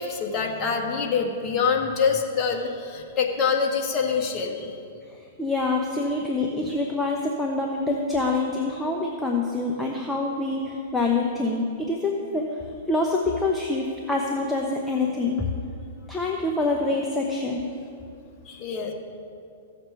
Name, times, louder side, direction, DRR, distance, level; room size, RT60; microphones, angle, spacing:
voice 1, 0.0-4.7 18.4-18.9, left 5 dB, 35° left, 1 dB, 1.6 m, -25 dB
voice 2, 5.1-15.5 16.1-17.8, left 2 dB, 5° left, -1 dB, 0.9 m, -26 dB
16.0 x 6.7 x 3.5 m, 2.5 s
hypercardioid pair, 120°, 0 cm